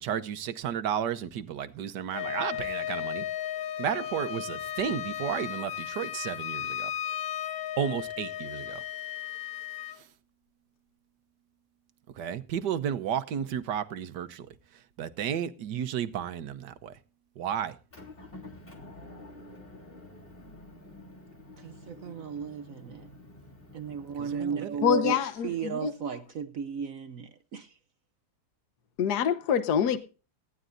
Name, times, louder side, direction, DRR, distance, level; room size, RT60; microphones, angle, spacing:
voice 1, 0.0-3.3 3.8-6.9 7.8-8.8 9.9-10.1 12.1-14.5 14.7-17.0 17.4-17.8 24.2-24.8, right 9 dB, 85° right, 1.6 m, -33 dB
Wind instrument woodwind instrument, 2.1-10.0, left 11 dB, 90° left, 1.7 m, -35 dB
Motor vehicle (road) / Engine, 17.9-24.4, left 2 dB, 35° left, 3.5 m, -49 dB
voice 2, 21.6-23.1 23.7-27.7, right 7 dB, 60° right, 1.1 m, -35 dB
voice 3, 24.8-25.9 29.0-30.0, left 8 dB, 70° left, 1.5 m, -25 dB
19.0 x 14.0 x 2.6 m
omnidirectional pair, 1.8 m